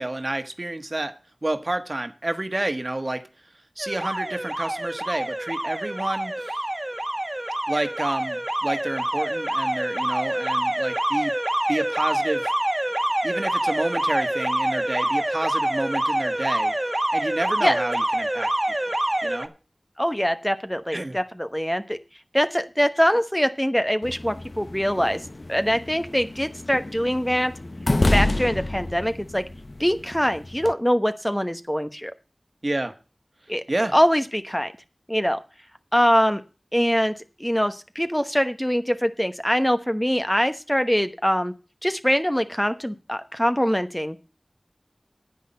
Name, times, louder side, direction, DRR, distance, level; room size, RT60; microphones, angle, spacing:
voice 1, 0.0-3.2 3.8-6.6 7.7-11.3 11.7-12.5 13.2-16.7 17.1-18.5 18.9-19.0 19.2-19.5 20.9-21.2 32.6-32.9 33.7-33.9, right 2 dB, 50° right, 1.4 m, -29 dB
Alarm, 3.8-19.5, right 1 dB, 30° right, 1.4 m, -26 dB
voice 2, 20.0-22.0 22.3-25.2 25.5-27.5 28.1-29.4 29.8-32.1 33.5-33.6 33.9-34.7 35.1-35.4 35.9-36.4 36.7-37.1 37.4-41.5 41.8-44.2, equal, 10° left, 1.0 m, -23 dB
sound 1, 24.0-30.7, left 2 dB, 60° left, 0.7 m, -29 dB
9.9 x 8.9 x 5.4 m
wide cardioid pair, 50°, 0 cm